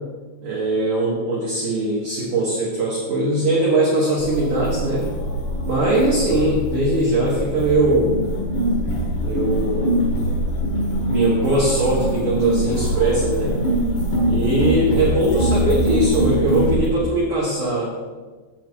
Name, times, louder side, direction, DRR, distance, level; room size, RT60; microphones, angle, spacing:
voice 1, 0.4-5.1 5.6-8.1 9.2-10.0 11.1-13.6 14.3-17.9, right 1 dB, 70° right, -5 dB, 1.9 m, -21 dB
sound 1, 4.2-16.9, equal, 60° left, 2.1 m, -23 dB
8.0 x 7.3 x 4.6 m, 1.3 s
omnidirectional pair, 5.7 m